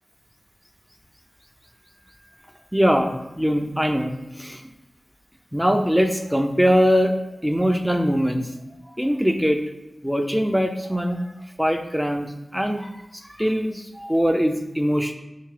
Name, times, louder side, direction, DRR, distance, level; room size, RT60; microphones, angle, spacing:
voice 1, 2.7-4.6 5.5-7.1 7.4-8.5 9.0-9.6 10.0-11.3 11.6-15.1, equal, 5° right, 5 dB, 0.4 m, -22 dB
3.6 x 2.6 x 3.2 m, 0.93 s
cardioid pair, 50°, 0 cm